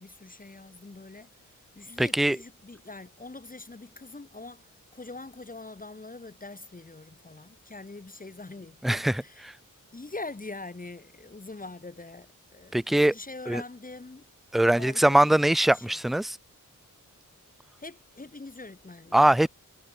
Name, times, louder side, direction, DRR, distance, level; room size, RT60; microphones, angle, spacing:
voice 1, 0.0-9.5 9.9-14.2 14.7-15.4 15.7-16.0 17.8-19.3, left 3 dB, 25° left, 5.9 m, -43 dB
voice 2, 2.0-2.4 8.8-9.1 12.7-13.1 13.5-13.6 14.5-16.4 19.1-19.5, right 1 dB, ahead, 0.4 m, -21 dB
wide cardioid pair, 160°, 32 cm